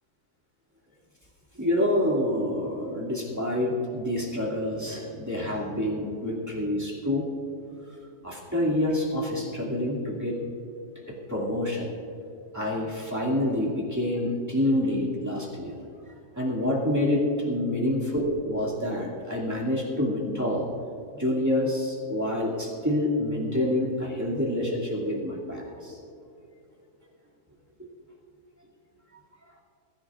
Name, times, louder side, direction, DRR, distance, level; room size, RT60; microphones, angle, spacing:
voice 1, 1.5-7.3 8.2-10.4 11.3-11.9 12.5-15.7 16.4-20.7 21.1-26.0 27.8-27.9, left 1 dB, 10° right, -5 dB, 2.4 m, -27 dB
22.0 x 14.5 x 2.5 m, 2.8 s
omnidirectional pair, 1.6 m